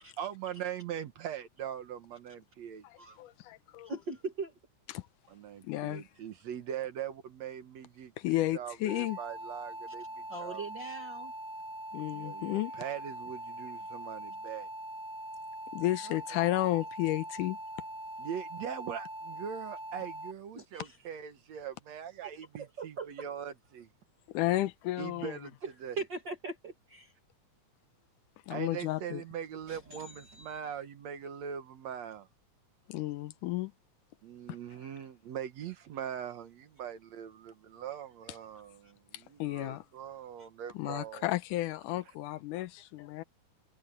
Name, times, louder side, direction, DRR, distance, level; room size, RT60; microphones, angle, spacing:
voice 1, 0.2-2.9 5.3-8.1 8.5-10.6 12.1-14.7 18.2-23.9 25.0-25.5 25.8-26.0 28.5-32.3 34.2-41.3, right 9 dB, 65° right, 2.3 m, -41 dB
voice 2, 2.8-3.9 4.9-5.1 5.6-6.0 8.2-9.2 11.9-12.7 15.7-17.6 24.4-25.5 28.5-29.2 32.9-33.7 39.1-39.9 40.7-43.2, left 16 dB, 85° left, 2.3 m, -32 dB
voice 3, 3.8-4.5 10.3-11.3 16.0-16.4 20.5-21.0 22.2-22.3 22.6-23.1 25.6-25.7 26.0-27.1 29.7-30.6 38.8-38.9 40.4-40.5, right 4 dB, 40° right, 2.2 m, -41 dB
sound 1, 8.9-20.3, right 1 dB, 5° right, 0.3 m, -42 dB
omnidirectional pair, 3.6 m